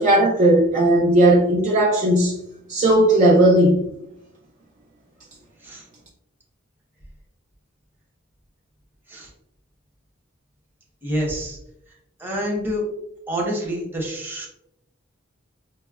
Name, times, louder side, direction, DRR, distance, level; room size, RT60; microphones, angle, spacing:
voice 1, 0.0-2.4 2.7-3.9, right 1 dB, 40° right, 0.5 m, -16 dB
voice 2, 11.0-11.6 12.2-12.8 13.3-14.5, equal, 10° right, 0.9 m, -27 dB
5.5 x 2.1 x 2.3 m
head